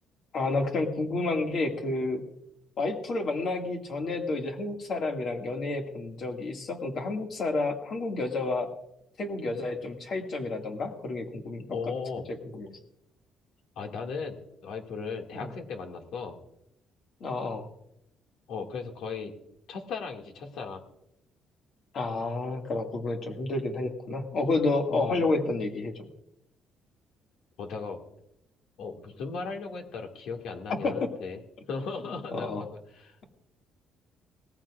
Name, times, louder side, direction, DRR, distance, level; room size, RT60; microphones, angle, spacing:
voice 1, 0.3-2.2 2.8-8.7 9.2-11.9 12.5-12.7 15.3-15.5 17.2-17.7 21.9-26.1 30.8-31.1 32.3-32.6, left 3 dB, 45° left, 3 dB, 2.1 m, -30 dB
voice 2, 11.7-12.3 13.8-14.4 14.6-16.4 18.5-19.3 19.7-20.8 24.9-25.2 27.6-28.0 28.8-31.4 31.7-33.2, left 5 dB, 70° left, 2 dB, 2.2 m, -37 dB
19.5 x 14.5 x 2.5 m, 0.80 s
cardioid pair, 160°, 0 cm